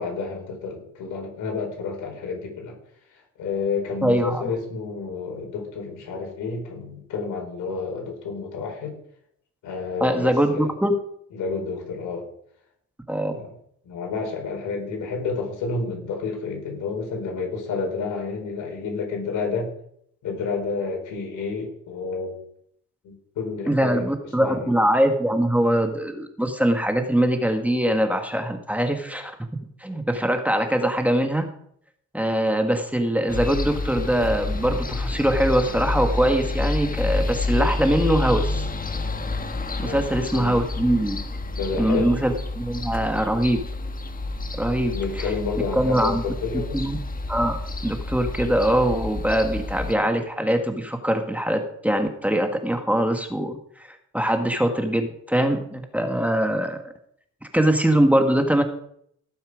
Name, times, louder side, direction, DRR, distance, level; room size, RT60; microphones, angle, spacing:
voice 1, 0.0-2.7 3.1-9.0 9.6-10.7 11.3-12.3 13.3-13.5 13.8-19.7 20.2-22.3 23.0-24.1 24.4-24.7 39.8-40.0 40.3-40.6 41.5-42.1 44.8-46.9, left 4 dB, 80° left, 1 dB, 4.9 m, -30 dB
voice 2, 4.0-4.5 10.0-10.9 13.1-13.3 23.7-29.5 29.8-31.5 32.1-38.7 39.8-41.2 41.8-43.6 44.6-45.2 45.7-46.2 46.7-47.0 47.3-47.6 47.8-53.5 53.9-56.8 57.5-58.6, right 1 dB, 5° right, 5 dB, 1.6 m, -22 dB
sound 1, 33.3-49.9, left 2 dB, 30° left, 1.5 m, -29 dB
17.5 x 7.1 x 5.1 m, 0.68 s
cardioid pair, 90°, 30 cm